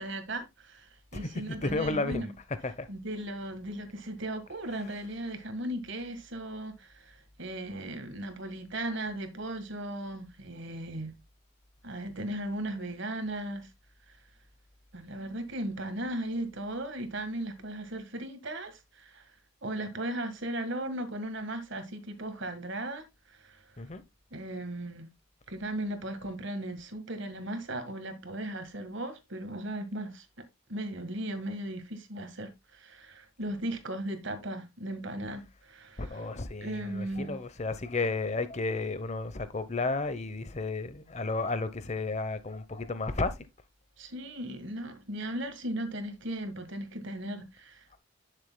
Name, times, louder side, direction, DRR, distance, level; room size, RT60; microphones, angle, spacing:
voice 1, 0.0-2.3 2.9-11.1 11.8-13.7 14.9-19.3 19.6-23.6 24.3-25.1 25.5-30.4 30.7-36.3 36.6-37.4 44.0-48.0, right 1 dB, 60° right, 1.6 m, -37 dB
voice 2, 1.1-2.3 2.6-2.9 23.8-24.0 36.0-43.5, left 3 dB, 35° left, 0.8 m, -33 dB
10.5 x 6.7 x 2.2 m
head